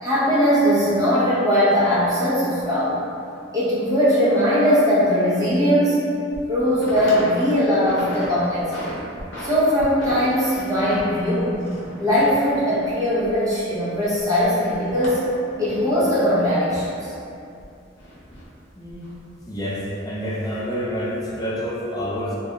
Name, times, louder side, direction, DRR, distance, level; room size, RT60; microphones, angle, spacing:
voice 1, 0.0-3.0 3.5-6.0 6.5-9.0 9.4-11.6 12.0-15.3 15.6-17.1, equal, 20° right, -12 dB, 0.7 m, -20 dB
sound 1, 2.6-2.7 4.9-5.0 5.5-5.6 6.1-6.5 6.7-7.3 7.6-8.3 8.6-9.5 9.8-13.8 14.0-16.9 17.6-18.4 18.9-19.2, equal, 75° left, 0.6 m, -36 dB
voice 2, 18.8-19.1 19.5-22.4, equal, 20° left, -6 dB, 0.4 m, -28 dB
2.3 x 2.2 x 2.9 m, 2.6 s
head